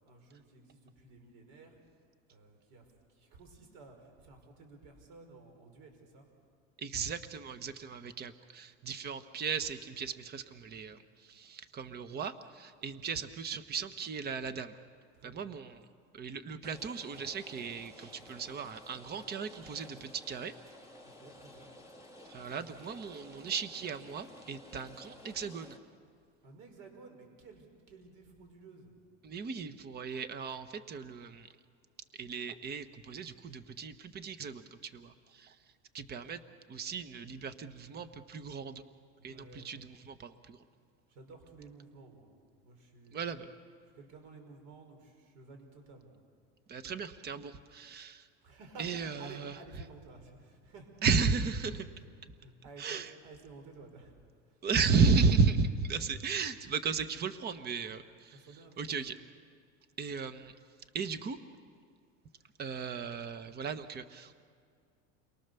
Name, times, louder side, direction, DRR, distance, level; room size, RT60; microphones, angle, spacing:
voice 1, 0.0-1.8 2.3-6.3 15.1-15.5 21.0-21.7 26.4-28.9 39.2-39.8 41.1-42.3 42.6-43.5 43.9-46.1 48.4-50.9 51.9-52.1 52.4-54.2 54.5-54.6 58.3-59.0, right 3 dB, 60° right, 4 dB, 5.3 m, -54 dB
voice 2, 6.8-14.8 15.2-15.8 16.1-20.5 22.3-25.8 29.2-31.5 32.2-35.6 35.9-36.4 36.7-38.8 39.2-40.6 43.1-43.5 46.7-48.3 48.8-49.5 51.0-51.8 52.8-53.1 54.6-58.4 58.8-59.1 60.0-60.5 60.9-61.4 62.6-64.4, right 5 dB, 30° right, 11 dB, 1.2 m, -35 dB
Rain, 16.6-25.8, left 1 dB, 10° right, 2.8 m, -53 dB
30.0 x 23.0 x 7.0 m, 2.2 s
supercardioid pair, 130°, 34 cm